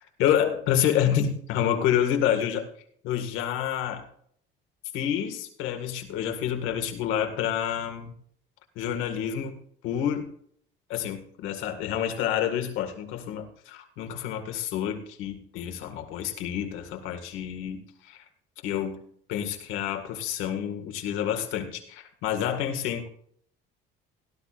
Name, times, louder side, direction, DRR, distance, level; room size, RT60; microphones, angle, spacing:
voice 1, 0.2-2.7 3.0-4.1 4.9-8.1 8.8-9.6 9.8-10.3 10.9-18.2 18.6-19.0 19.3-23.1, left 9 dB, 85° left, 5 dB, 2.0 m, -28 dB
17.5 x 12.5 x 2.5 m, 0.62 s
cardioid pair, 165°, 20 cm